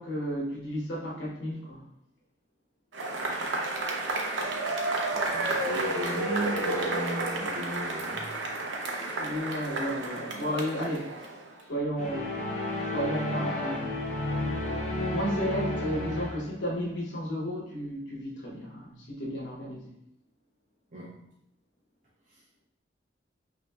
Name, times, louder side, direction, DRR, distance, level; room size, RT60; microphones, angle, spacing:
voice 1, 0.0-1.9 9.2-11.1 11.7-12.5 12.9-14.1 15.1-19.9, equal, 75° left, -3 dB, 0.9 m, -33 dB
Cheering / Applause / Crowd, 2.9-11.6, right 2 dB, 85° right, 0.6 m, -31 dB
voice 2, 5.1-8.3 20.9-21.2, right 1 dB, 40° right, -6 dB, 0.6 m, -36 dB
sound 1, 12.0-16.6, left 2 dB, 40° left, 0.6 m, -32 dB
5.3 x 2.7 x 2.3 m, 0.73 s
head